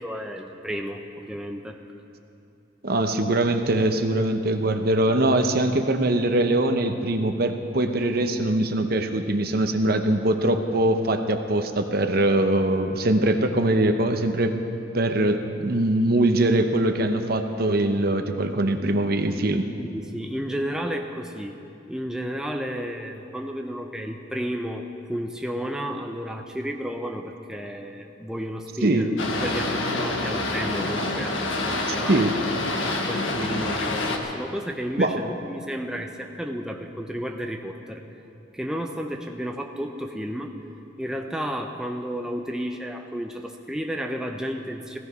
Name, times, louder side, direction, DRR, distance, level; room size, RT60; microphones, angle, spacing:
voice 1, 0.0-1.8 19.8-21.5 21.9-32.2 32.8-38.0 38.5-40.5 41.0-45.0, equal, 5° right, 3 dB, 0.6 m, -32 dB
voice 2, 2.8-14.5 14.9-19.6 28.8-29.1 31.9-32.4 35.0-35.2, right 1 dB, 50° right, 7 dB, 0.9 m, -22 dB
Boat Water vehicle, 29.2-34.2, left 2 dB, 90° left, 1.5 m, -27 dB
16.0 x 15.0 x 5.5 m, 2.8 s
head